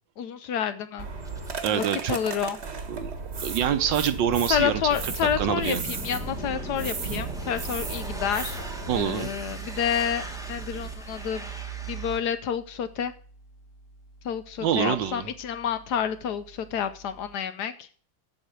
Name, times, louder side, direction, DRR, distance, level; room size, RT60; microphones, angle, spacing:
voice 1, 0.2-1.1 1.7-2.6 4.5-8.6 8.9-10.2 10.5-11.5 11.9-13.1 14.2-17.9, left 8 dB, 70° left, 11 dB, 1.1 m, -29 dB
sound 1, 1.0-9.0, right 3 dB, 40° right, 1.3 m, -34 dB
sound 2, 1.2-12.2, right 3 dB, 5° right, 0.7 m, -40 dB
voice 2, 1.6-2.2 2.9-3.1 3.4-4.8 5.4-5.8 8.9-9.3 14.6-15.3, right 9 dB, 75° right, 11 dB, 1.5 m, -26 dB
sound 3, 3.8-17.4, right 1 dB, 50° left, 1.1 m, -53 dB
7.9 x 6.2 x 7.8 m, 0.43 s
omnidirectional pair, 2.1 m